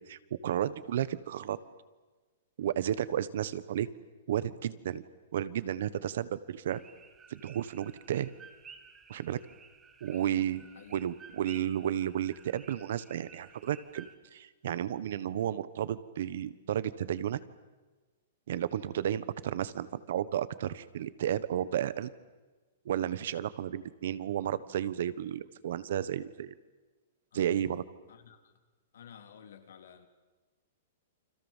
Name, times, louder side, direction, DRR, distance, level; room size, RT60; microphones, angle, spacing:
voice 1, 0.1-1.6 2.6-3.9 4.3-5.0 5.3-6.8 7.3-8.3 9.1-9.4 10.0-10.6 10.9-17.4 18.5-22.1 22.8-26.5 27.3-27.8, right 10 dB, 55° right, 16 dB, 1.4 m, -32 dB
sound 1, 6.7-14.1, right 6 dB, 10° right, 1.5 m, -54 dB
voice 2, 28.1-28.5 28.9-30.1, left 8 dB, 80° left, 6 dB, 3.5 m, -52 dB
29.5 x 26.0 x 7.5 m, 1.3 s
hypercardioid pair, 175°, 0 cm